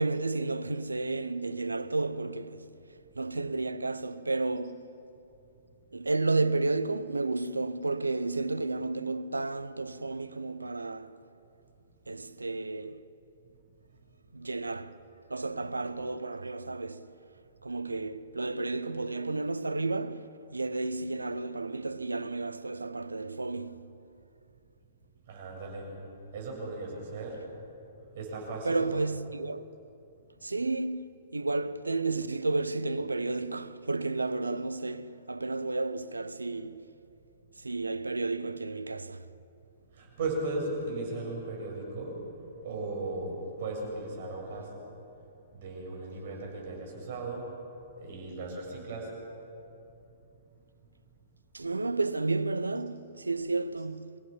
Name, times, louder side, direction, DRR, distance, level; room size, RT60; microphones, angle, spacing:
voice 1, 0.0-2.7 3.2-4.9 5.9-11.1 12.1-13.0 14.3-15.0 15.3-17.1 17.6-24.0 28.6-29.6 30.4-36.9 37.6-39.3 51.5-54.2, right 3 dB, 85° right, 0.7 m, -32 dB
voice 2, 25.3-26.0 26.3-27.5 28.1-28.9 39.9-42.3 42.6-44.7 45.5-47.5 48.0-49.2, right 2 dB, 50° right, 7.3 m, -36 dB
26.5 x 16.5 x 7.3 m
figure-of-eight pair, 115°, 0 cm